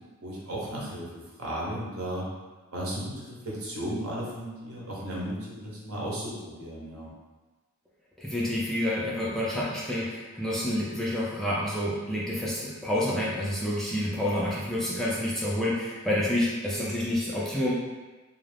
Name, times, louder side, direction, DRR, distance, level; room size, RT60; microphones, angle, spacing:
voice 1, 0.2-1.1 1.4-2.3 2.7-7.1, right 1 dB, 80° right, -5 dB, 0.8 m, -35 dB
voice 2, 8.2-17.7, left 1 dB, ahead, -7 dB, 0.3 m, -28 dB
2.4 x 2.4 x 3.2 m, 1.2 s
head